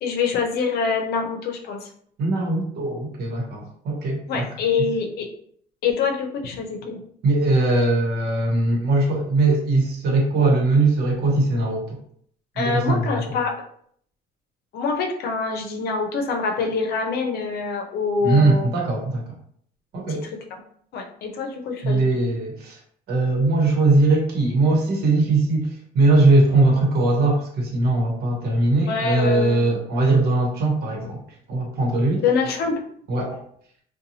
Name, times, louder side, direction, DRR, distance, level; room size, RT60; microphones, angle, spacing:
voice 1, 0.0-1.9 4.3-5.3 5.8-7.0 12.6-13.5 14.7-18.7 20.1-20.6 20.9-22.1 28.9-29.6 32.2-32.8, left 5 dB, 70° left, 3 dB, 0.6 m, -25 dB
voice 2, 2.2-4.5 7.2-12.0 12.5-13.4 18.2-19.2 19.9-20.2 21.8-22.8 23.1-31.2 31.5-32.2 33.1-33.4, right 2 dB, 70° right, -1 dB, 1.0 m, -20 dB
2.7 x 2.3 x 2.7 m, 0.62 s
cardioid pair, 110°, 17 cm